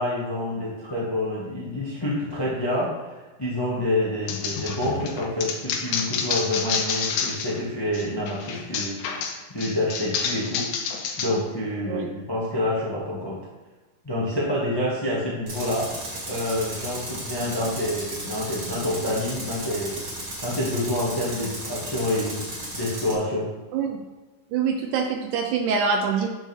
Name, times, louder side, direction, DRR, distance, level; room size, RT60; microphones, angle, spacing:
voice 1, 0.0-3.1 3.4-10.7 11.2-13.4 14.0-15.9 16.3-20.0 20.4-22.4 22.7-23.5, left 1 dB, 20° left, -6 dB, 0.5 m, -27 dB
sound 1, 4.3-7.6 7.9-11.3, left 6 dB, 80° left, 2.5 m, -29 dB
Tools, 15.5-23.2, right 1 dB, 35° right, 2.5 m, -35 dB
voice 2, 24.5-26.3, right 5 dB, 75° right, 3 dB, 1.9 m, -24 dB
10.0 x 6.2 x 3.5 m, 1.2 s
omnidirectional pair, 3.9 m